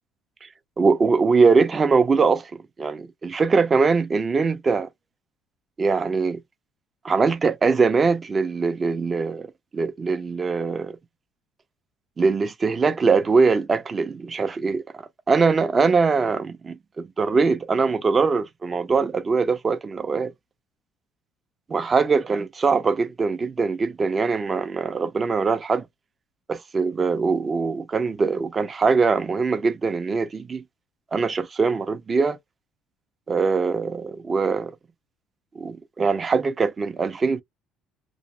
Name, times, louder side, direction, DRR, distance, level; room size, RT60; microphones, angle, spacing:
voice 1, 0.8-2.5 2.8-4.9 5.8-6.4 7.0-11.0 12.2-20.3 21.7-25.8 26.5-30.6 31.1-32.4 33.3-34.7 35.5-37.4, right 4 dB, 20° right, 0.5 m, -22 dB
2.8 x 2.0 x 2.5 m
cardioid pair, 170°, 0 cm